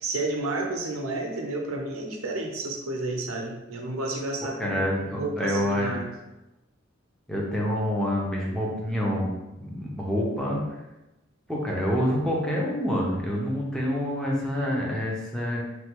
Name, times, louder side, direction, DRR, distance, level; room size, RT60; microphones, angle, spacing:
voice 1, 0.0-6.1, right 2 dB, 85° right, 1 dB, 0.6 m, -31 dB
voice 2, 4.4-6.0 7.3-9.3 9.6-10.6 11.5-15.7, equal, 5° left, -4 dB, 0.5 m, -27 dB
3.2 x 2.2 x 2.9 m, 0.96 s
head